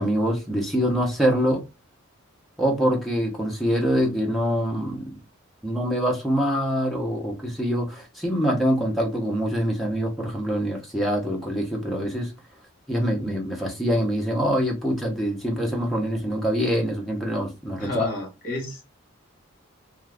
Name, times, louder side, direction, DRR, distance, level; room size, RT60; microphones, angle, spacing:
voice 1, 0.0-1.6 2.6-5.1 5.6-12.3 12.9-18.1, equal, ahead, 0.7 m, -24 dB
voice 2, 17.8-18.8, left 1 dB, 40° left, 1.1 m, -31 dB
2.4 x 2.3 x 3.3 m
head